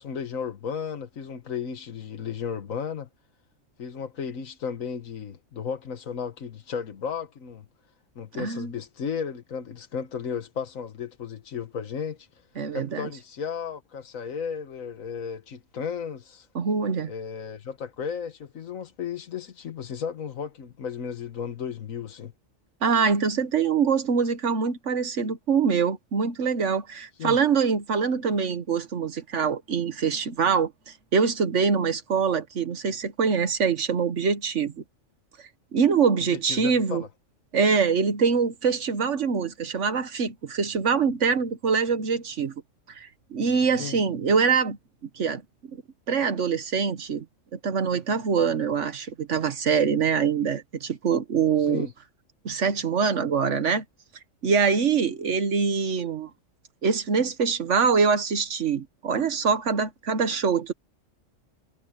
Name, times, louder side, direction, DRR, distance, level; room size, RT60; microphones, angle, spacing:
voice 1, 0.0-3.1 3.8-7.6 8.1-12.3 12.7-16.5 17.1-22.3 27.2-27.4 36.2-37.1 43.8-44.0 51.6-51.9, left 7 dB, 85° left, 1.7 m, -34 dB
voice 2, 8.4-8.7 12.6-13.1 16.5-17.1 22.8-34.8 35.7-37.0 37.5-42.5 42.9-44.8 45.1-45.4 46.1-47.2 47.5-51.9 52.4-53.8 54.4-56.3 56.8-60.7, right 5 dB, 65° right, 1.4 m, -24 dB
omnidirectional pair, 1.3 m